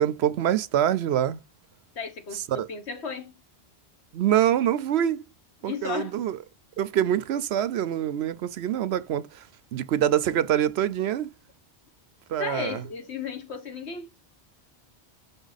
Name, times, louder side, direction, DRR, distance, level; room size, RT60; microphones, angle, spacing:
voice 1, 0.0-1.4 2.5-2.7 4.1-5.3 5.6-6.4 6.8-9.4 9.7-11.3 12.3-12.8, right 10 dB, 75° right, 0.9 m, -25 dB
voice 2, 1.9-3.3 5.6-6.2 12.4-14.1, left 5 dB, 75° left, 1.6 m, -34 dB
6.0 x 3.9 x 4.0 m
omnidirectional pair, 1.1 m